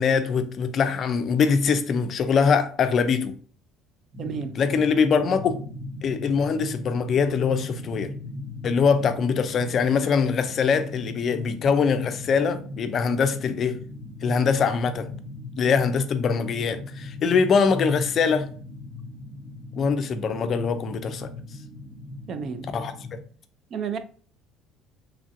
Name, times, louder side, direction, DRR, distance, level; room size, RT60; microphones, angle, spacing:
voice 1, 0.0-3.4 4.5-5.6 6.0-8.1 8.6-13.8 14.2-15.1 15.6-18.5 19.8-21.3 22.6-23.2, left 5 dB, 45° left, 0.4 m, -23 dB
sound 1, 4.1-23.2, left 2 dB, 25° right, 0.9 m, -39 dB
voice 2, 4.2-4.6 22.3-22.7 23.7-24.0, right 6 dB, 50° right, 0.4 m, -31 dB
3.1 x 2.5 x 2.5 m
cardioid pair, 105°, 0 cm